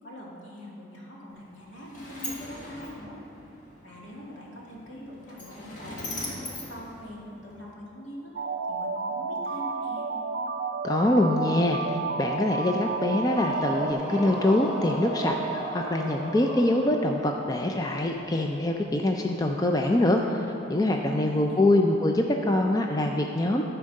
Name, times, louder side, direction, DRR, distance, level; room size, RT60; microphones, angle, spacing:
voice 1, 0.0-3.2 3.8-8.3 8.7-10.1 20.8-21.6, left 1 dB, 75° left, -4 dB, 2.2 m, -43 dB
Sliding door, 1.3-7.7, left 1 dB, 40° left, 1.7 m, -41 dB
sound 1, 8.4-13.9, right 4 dB, 50° right, 0.4 m, -31 dB
voice 2, 10.8-23.6, left 1 dB, 20° left, 2 dB, 0.4 m, -24 dB
sound 2, 13.2-17.2, right 1 dB, 5° right, 1.1 m, -34 dB
13.5 x 4.6 x 6.4 m, 2.9 s
head